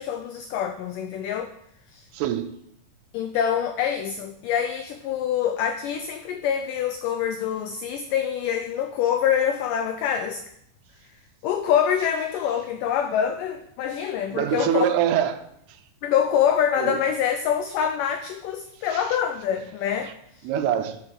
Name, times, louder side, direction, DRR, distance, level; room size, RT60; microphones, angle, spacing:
voice 1, 0.0-1.5 1.9-2.1 3.1-10.4 11.4-14.9 16.0-20.1, left 8 dB, 85° left, 1.9 m, -25 dB
voice 2, 2.1-2.5 14.3-15.4 16.8-17.0 18.9-19.1 20.0-20.1 20.4-21.0, right 9 dB, 85° right, 2.8 m, -24 dB
9.5 x 7.8 x 6.0 m
omnidirectional pair, 4.5 m